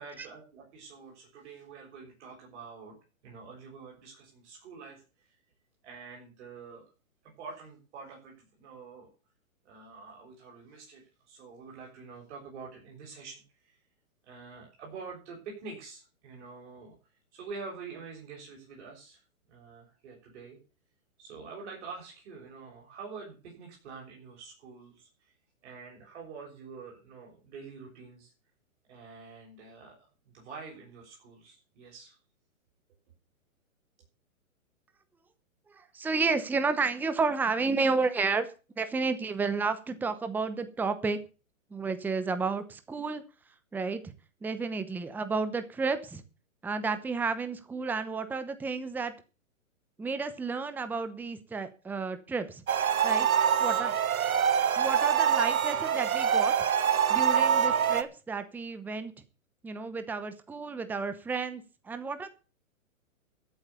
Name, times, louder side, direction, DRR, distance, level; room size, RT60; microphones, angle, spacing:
voice 1, 0.0-3.0 3.2-5.0 5.8-6.9 7.2-9.1 9.6-13.8 14.2-16.9 17.3-19.2 19.5-20.6 21.2-25.1 25.6-28.3 28.9-32.2, right 4 dB, 55° right, -1 dB, 6.8 m, -46 dB
voice 2, 35.7-38.5 38.8-41.2 41.7-43.2 43.7-44.0 44.4-46.2 46.6-49.1 50.0-52.6 53.0-53.3 53.6-53.9 54.8-56.5 57.1-59.1 59.6-62.3, right 4 dB, 5° right, 11 dB, 0.9 m, -31 dB
sound 1, 52.7-58.0, right 8 dB, 80° right, 1.5 m, -25 dB
14.0 x 8.2 x 7.0 m, 0.34 s
hypercardioid pair, 140°, 42 cm